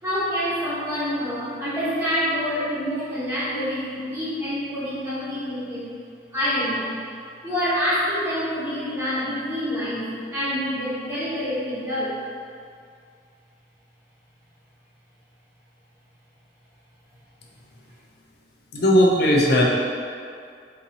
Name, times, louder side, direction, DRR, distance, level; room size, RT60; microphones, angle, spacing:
voice 1, 0.0-5.9 6.3-7.0 7.4-12.2, equal, 15° right, -14 dB, 1.0 m, -27 dB
voice 2, 18.7-19.6, equal, 60° left, -1 dB, 0.5 m, -17 dB
2.9 x 2.7 x 3.8 m, 2.3 s
head